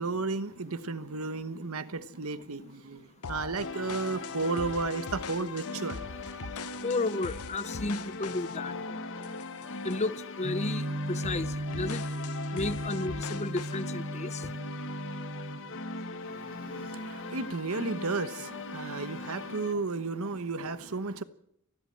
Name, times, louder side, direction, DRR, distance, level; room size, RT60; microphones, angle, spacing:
voice 1, 0.0-6.0 16.2-21.2, right 3 dB, 75° right, 1.2 m, -33 dB
sound 1, 3.2-10.2 10.6-10.8 11.2-13.8, left 5 dB, 85° left, 0.9 m, -43 dB
sound 2, 3.6-19.7, left 3 dB, 60° left, 1.7 m, -40 dB
voice 2, 6.8-8.7 9.8-12.0 12.5-14.5, left 2 dB, 30° left, 0.8 m, -33 dB
sound 3, 10.4-15.6, right 1 dB, 45° right, 1.7 m, -36 dB
29.0 x 12.0 x 7.8 m
head